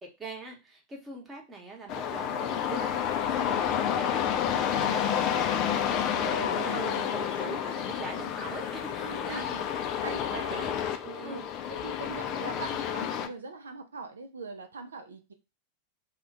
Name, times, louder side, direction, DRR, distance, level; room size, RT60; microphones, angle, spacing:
voice 1, 0.0-10.7 11.0-11.5, right 2 dB, 15° right, 0 dB, 0.9 m, -43 dB
sound 1, 1.9-13.3, left 9 dB, 40° left, 0.3 m, -30 dB
voice 2, 6.2-7.6 9.0-9.6 10.0-10.7 11.2-11.4 11.7-15.3, right 4 dB, 70° right, 6 dB, 0.4 m, -41 dB
2.4 x 2.1 x 3.7 m, 0.26 s
figure-of-eight pair, 90°, 0 cm